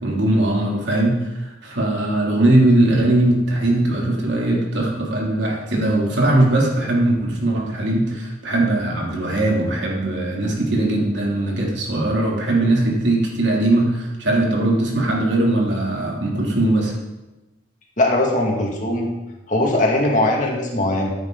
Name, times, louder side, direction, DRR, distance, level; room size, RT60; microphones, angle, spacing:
voice 1, 0.0-16.9, right 1 dB, 70° right, -2 dB, 3.0 m, -20 dB
voice 2, 18.0-19.1 19.5-21.1, left 1 dB, 45° left, -1 dB, 2.4 m, -20 dB
14.0 x 9.6 x 4.0 m, 1.1 s
head